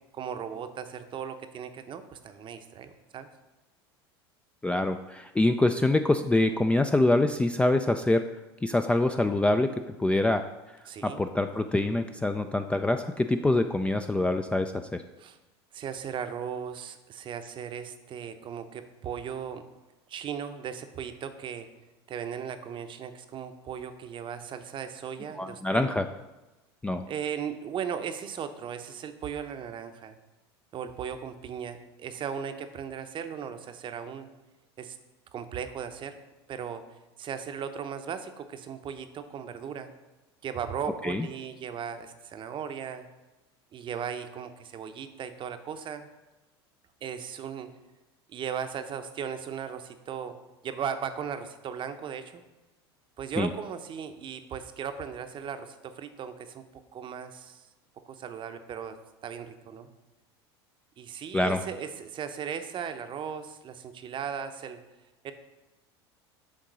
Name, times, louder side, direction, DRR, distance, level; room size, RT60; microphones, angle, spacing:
voice 1, 0.1-3.3 10.9-11.2 15.2-15.4 15.7-19.6 20.1-21.7 22.1-25.9 27.0-30.2 30.7-34.3 34.8-35.0 35.3-36.2 36.5-36.8 37.2-39.9 40.4-43.0 43.7-46.1 47.0-47.7 48.3-50.4 50.6-52.4 53.2-56.6 56.9-57.6 58.0-59.0 59.2-59.9 61.0-64.8 65.2-65.3, right 7 dB, 35° right, 9 dB, 0.7 m, -37 dB
voice 2, 4.6-8.2 8.6-9.7 10.0-10.4 11.0-15.0 25.3-26.1 26.8-27.0 41.0-41.3 53.4-53.5 61.3-61.6, left 2 dB, 10° left, 7 dB, 0.3 m, -25 dB
6.6 x 3.7 x 6.1 m, 1.1 s
hypercardioid pair, 85°, 14 cm